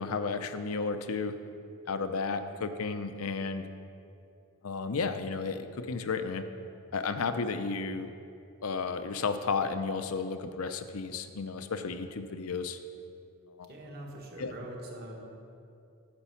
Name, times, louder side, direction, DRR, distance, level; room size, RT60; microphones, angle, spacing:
voice 1, 0.0-1.4 1.9-3.6 4.6-6.5 6.9-8.1 8.6-12.8 13.6-13.7 14.4-14.5, left 4 dB, 75° left, 9 dB, 0.6 m, -33 dB
voice 2, 13.7-15.2, right 1 dB, 45° right, 0 dB, 1.6 m, -43 dB
9.9 x 6.0 x 7.0 m, 2.6 s
head